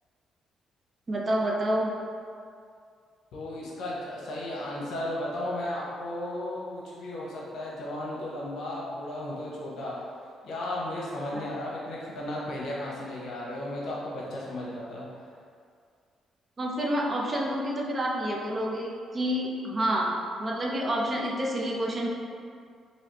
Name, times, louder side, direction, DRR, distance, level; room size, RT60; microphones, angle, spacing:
voice 1, 1.1-1.9 11.3-11.5 16.6-20.1 20.4-22.1, equal, 35° right, -2 dB, 0.5 m, -28 dB
voice 2, 3.3-9.9 10.4-15.1, left 1 dB, 75° left, -5 dB, 0.8 m, -34 dB
3.2 x 2.8 x 2.9 m, 2.2 s
cardioid pair, 90°, 0 cm